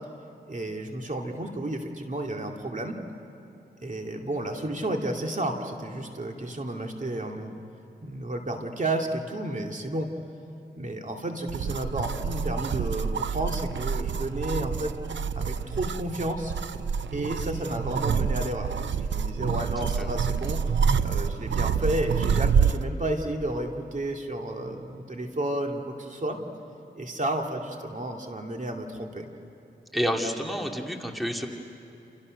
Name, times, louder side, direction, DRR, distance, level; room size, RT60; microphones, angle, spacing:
voice 1, 0.5-2.9 3.8-7.5 8.0-10.1 10.8-14.9 15.4-16.5 17.1-26.4 27.0-29.3, right 1 dB, 45° right, 2 dB, 2.6 m, -32 dB
sound 1, 11.5-22.9, right 6 dB, 85° right, 0.7 m, -27 dB
voice 2, 29.9-31.5, equal, ahead, 2 dB, 2.5 m, -29 dB
28.5 x 28.5 x 6.5 m, 2.9 s
cardioid pair, 65°, 19 cm